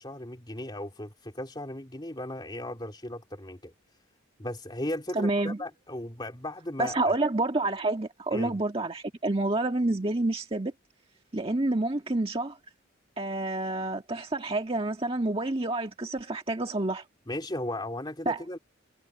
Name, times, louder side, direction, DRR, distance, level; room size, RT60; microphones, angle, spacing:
voice 1, 0.0-3.7 4.4-7.1 8.3-8.6 17.3-18.6, left 1 dB, 20° left, 3.3 m, -36 dB
voice 2, 5.1-5.6 6.8-10.7 11.3-12.6 13.2-17.0 18.2-18.4, right 2 dB, 30° right, 1.6 m, -28 dB
head